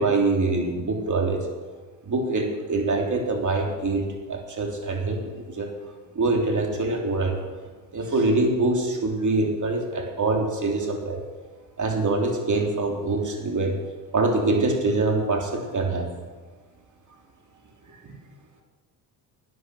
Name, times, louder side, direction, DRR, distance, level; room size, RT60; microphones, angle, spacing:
voice 1, 0.0-1.5 2.1-5.2 5.5-5.7 6.1-7.4 7.9-11.2 11.8-13.8 14.1-16.1 17.9-18.0, right 2 dB, 35° right, 1 dB, 3.4 m, -24 dB
12.5 x 10.0 x 6.4 m, 1.4 s
supercardioid pair, 70°, 49 cm